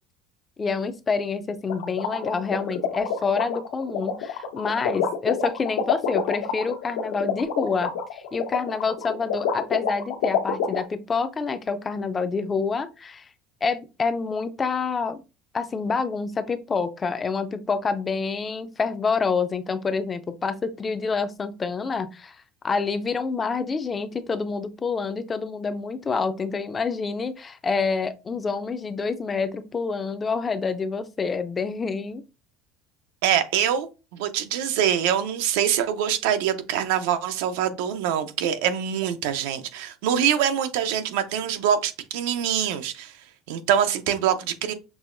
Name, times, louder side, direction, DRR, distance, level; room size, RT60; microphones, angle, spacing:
voice 1, 0.6-13.3 13.6-15.2 15.5-22.4 22.6-32.2, left 4 dB, 20° left, 0.3 m, -27 dB
sound 1, 1.7-10.8, left 7 dB, 90° left, 0.8 m, -27 dB
voice 2, 33.2-43.1 43.5-44.7, right 9 dB, 90° right, 0.6 m, -24 dB
6.1 x 2.9 x 2.5 m
cardioid pair, 165°, 0 cm